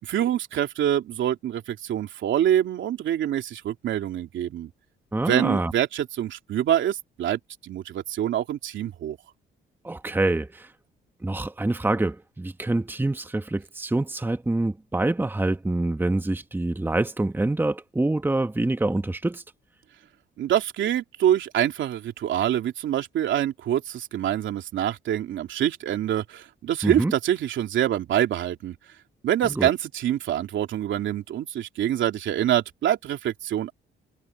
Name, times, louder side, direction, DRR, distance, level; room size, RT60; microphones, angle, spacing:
voice 1, 0.0-4.7 5.3-9.2 20.4-28.7 29.2-33.7, right 11 dB, 75° right, 2.9 m, -25 dB
voice 2, 5.1-5.7 9.8-10.7 11.2-19.4 26.8-27.1 29.4-29.7, right 2 dB, 10° right, 1.1 m, -26 dB
cardioid pair, 90°, 20 cm